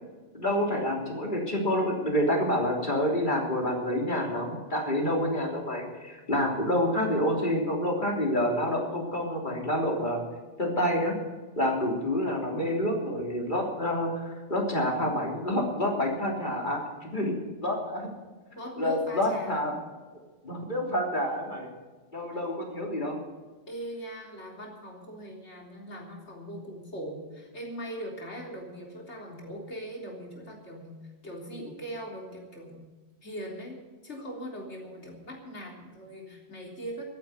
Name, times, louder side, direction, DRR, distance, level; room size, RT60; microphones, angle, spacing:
voice 1, 0.3-10.2 10.6-11.2 11.6-18.1 18.8-19.7 20.4-21.7 22.1-23.2, left 1 dB, 40° left, 0 dB, 3.5 m, -28 dB
voice 2, 18.5-19.7 23.7-31.0 31.2-32.8 33.2-33.8 34.0-37.0, right 1 dB, 70° left, 0 dB, 3.9 m, -40 dB
13.5 x 9.9 x 9.5 m, 1.4 s
omnidirectional pair, 1.2 m